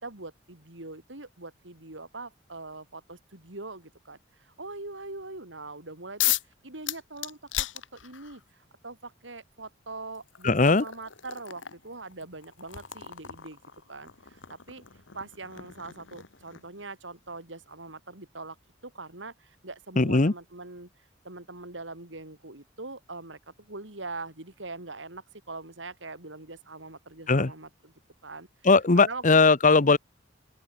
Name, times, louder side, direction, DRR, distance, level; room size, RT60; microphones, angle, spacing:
voice 1, 0.0-6.2 6.6-7.7 7.9-8.4 8.8-13.6 13.9-14.8 15.1-18.6 18.8-20.9 21.2-27.9 28.2-28.5 29.0-29.2, right 3 dB, 75° right, 4.1 m, -42 dB
sound 1, 6.2-6.5 6.9-8.4 9.5-9.6 10.1-16.8, left 14 dB, 80° left, 1.6 m, -35 dB
voice 2, 10.4-10.8 20.0-20.3 27.3-27.5 28.6-30.0, left 3 dB, 40° left, 1.0 m, -19 dB
open air
head